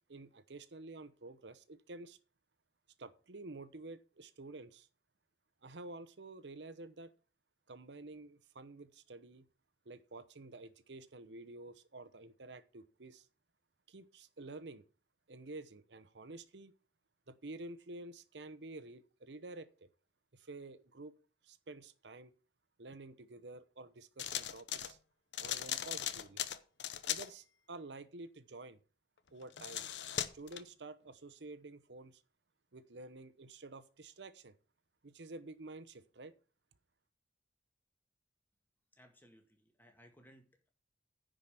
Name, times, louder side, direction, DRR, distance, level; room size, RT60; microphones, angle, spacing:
voice 1, 0.1-2.2 3.0-4.9 5.6-7.1 7.7-9.5 9.8-13.3 13.9-14.8 15.3-16.7 17.3-19.9 20.3-21.1 21.4-22.3 22.8-25.0 25.4-26.4 27.1-28.8 29.3-29.9 30.3-32.2 32.7-34.5 35.0-36.3, right 2 dB, 80° right, 0.9 m, -50 dB
sound 1, 24.2-24.9 25.3-27.3 29.4-30.6, left 10 dB, 85° left, 0.9 m, -38 dB
voice 2, 38.9-40.7, equal, 10° left, 1.8 m, -62 dB
10.0 x 5.1 x 7.5 m
head